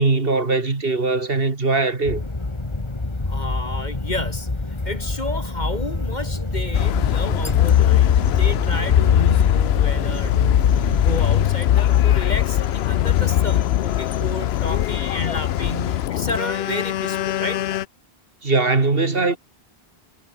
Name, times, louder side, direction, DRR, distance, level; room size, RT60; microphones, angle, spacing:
voice 1, 0.0-2.2 18.4-19.4, right 3 dB, 65° right, 2.5 m, -20 dB
sound 1, 2.1-11.5, left 2 dB, 30° left, 1.8 m, -27 dB
voice 2, 3.3-17.6, left 2 dB, 45° left, 3.3 m, -31 dB
sound 2, 6.7-17.8, left 12 dB, 85° left, 0.9 m, -20 dB
omnidirectional pair, 1.0 m